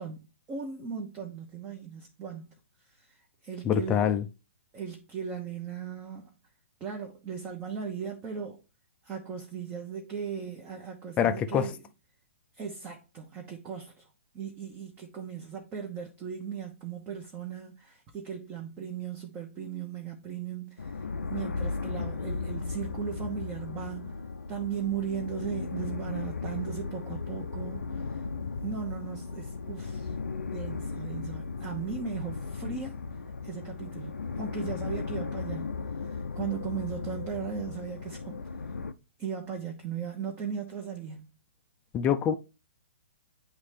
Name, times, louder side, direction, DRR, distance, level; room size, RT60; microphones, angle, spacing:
voice 1, 0.0-2.5 3.0-3.2 3.4-4.2 4.7-6.3 6.8-8.6 9.0-11.7 12.6-14.1 14.3-21.0 21.3-24.2 24.5-28.2 28.6-30.1 30.5-33.0 33.4-35.7 36.0-38.4 39.2-41.3, right 7 dB, 20° right, 1.0 m, -37 dB
voice 2, 3.6-4.2 11.2-11.7 41.9-42.3, left 8 dB, 20° left, 0.5 m, -25 dB
deep under, 20.8-38.9, left 4 dB, 85° left, 0.5 m, -36 dB
9.4 x 3.2 x 3.3 m
hypercardioid pair, 130°, 7 cm